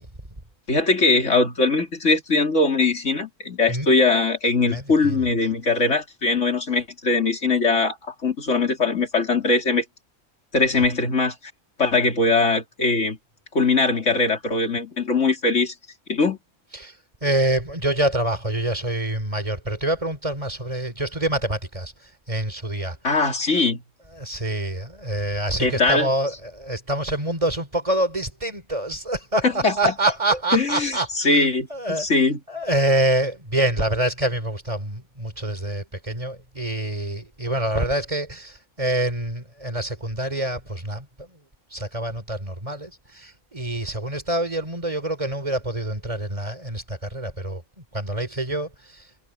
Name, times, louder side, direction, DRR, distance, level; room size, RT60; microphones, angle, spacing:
voice 1, 0.7-9.8 10.5-11.4 11.8-13.2 13.5-15.7 16.1-16.4 23.0-23.8 25.6-26.1 29.4-29.9 30.5-32.4, left 3 dB, 70° left, 3.8 m, -21 dB
voice 2, 4.7-5.2 10.8-10.9 16.8-16.9 17.2-21.9 22.3-23.0 24.2-31.4 31.7-32.1 32.5-41.3 41.7-47.6 47.9-48.7, right 1 dB, 25° right, 3.4 m, -26 dB
omnidirectional pair, 1.3 m